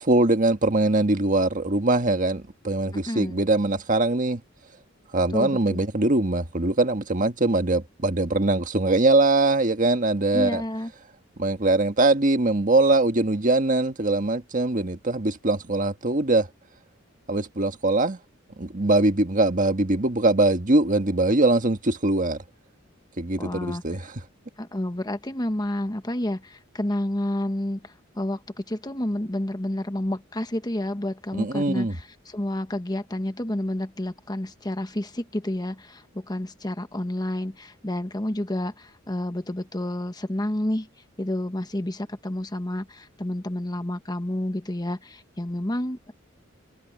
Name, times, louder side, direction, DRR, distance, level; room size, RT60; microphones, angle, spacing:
voice 1, 0.0-4.4 5.1-10.6 11.4-16.5 17.3-18.2 18.6-22.4 23.2-24.2 31.3-32.0, right 2 dB, 40° right, 1.6 m, -22 dB
voice 2, 3.1-3.4 5.3-5.8 10.3-10.9 23.4-23.8 24.6-40.9 41.2-46.1, left 1 dB, 20° left, 1.2 m, -30 dB
head